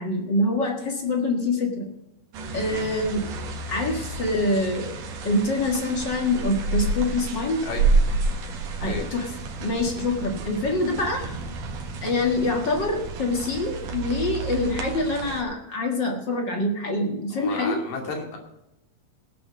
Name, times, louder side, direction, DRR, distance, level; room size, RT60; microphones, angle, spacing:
voice 1, 0.0-1.9 2.5-3.3 3.7-5.0 5.2-7.6 8.8-9.3 9.6-11.2 12.0-17.8, left 2 dB, 40° left, 2 dB, 1.8 m, -25 dB
sound 1, 2.3-15.4, right 3 dB, 75° right, 3.1 m, -29 dB
voice 2, 17.3-18.4, left 4 dB, 80° left, 1 dB, 4.2 m, -33 dB
17.5 x 6.3 x 6.4 m, 0.89 s
omnidirectional pair, 3.8 m